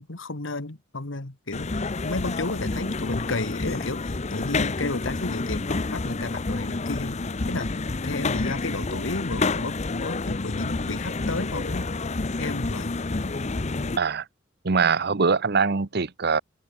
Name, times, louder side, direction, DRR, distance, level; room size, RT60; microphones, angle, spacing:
voice 1, 0.0-1.7 2.0-7.2 7.5-7.8 8.0-11.9 12.4-12.9, left 2 dB, 80° left, 1.8 m, -32 dB
sound 1, 1.5-14.0, left 3 dB, 35° left, 0.8 m, -29 dB
voice 2, 14.6-16.4, right 5 dB, 55° right, 0.9 m, -22 dB
head